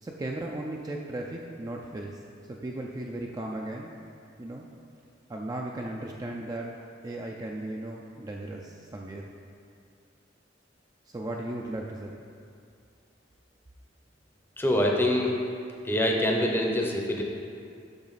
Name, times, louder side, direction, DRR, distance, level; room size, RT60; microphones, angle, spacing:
voice 1, 0.0-2.2 2.5-3.9 4.4-4.7 5.3-6.7 7.0-9.2 11.1-12.2, right 1 dB, 20° right, -1 dB, 0.3 m, -36 dB
voice 2, 14.6-15.3 15.8-17.2, left 1 dB, 10° left, 0 dB, 0.7 m, -25 dB
7.2 x 5.8 x 4.0 m, 2.4 s
head